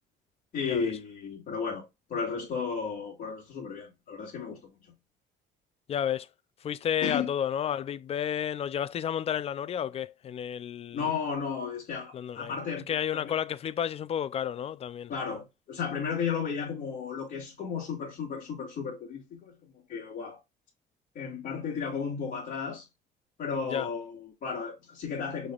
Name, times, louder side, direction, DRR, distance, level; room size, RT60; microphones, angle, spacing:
voice 1, 0.5-1.8 2.1-4.6 7.0-7.3 10.9-12.9 13.1-13.4 15.1-20.4 21.2-22.8 23.4-25.5, left 6 dB, 55° left, 2.1 m, -34 dB
voice 2, 5.9-6.3 6.6-11.1 12.1-12.5 12.9-15.1 23.6-23.9, left 9 dB, 35° left, 0.4 m, -31 dB
6.1 x 3.3 x 2.4 m
cardioid pair, 110°, 17 cm